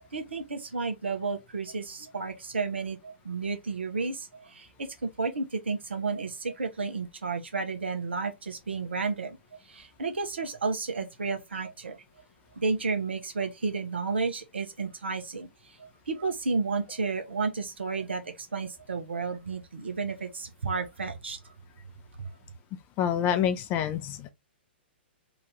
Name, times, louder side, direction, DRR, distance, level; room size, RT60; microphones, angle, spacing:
voice 1, 0.1-9.4 9.7-12.0 12.6-15.5 15.8-21.4 22.2-22.3, right 4 dB, 75° right, 0.9 m, -32 dB
voice 2, 23.0-24.3, left 9 dB, 30° left, 0.6 m, -27 dB
3.0 x 2.6 x 3.6 m
figure-of-eight pair, 115°, 6 cm